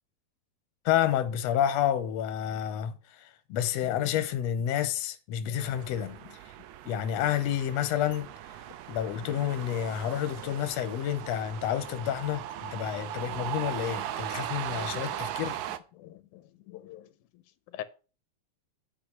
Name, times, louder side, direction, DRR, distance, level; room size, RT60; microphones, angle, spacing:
voice 1, 0.9-6.2 6.9-8.6 8.9-15.6, left 10 dB, 70° left, 1.9 m, -29 dB
voice 2, 5.5-5.8 6.0-6.2 9.2-9.3 13.3-13.4 14.7-15.0 15.9-17.4 17.7-17.8, left 13 dB, 85° left, 2.2 m, -45 dB
sound 1, 5.6-15.8, right 12 dB, 80° right, 2.0 m, -38 dB
8.6 x 5.0 x 7.1 m
omnidirectional pair, 3.5 m